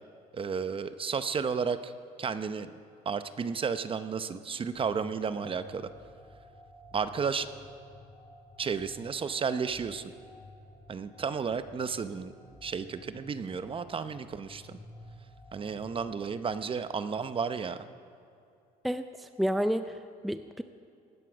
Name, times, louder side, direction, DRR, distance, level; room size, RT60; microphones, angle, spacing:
voice 1, 0.3-1.9 2.2-2.7 3.1-5.9 6.9-7.5 8.6-10.1 10.9-12.3 12.6-14.8 15.5-17.9, right 6 dB, 30° right, 12 dB, 0.7 m, -32 dB
sound 1, 4.7-16.6, left 1 dB, 20° left, 3.1 m, -53 dB
voice 2, 18.8-20.6, equal, ahead, 10 dB, 0.5 m, -31 dB
19.0 x 11.5 x 6.0 m, 2.5 s
cardioid pair, 110°, 17 cm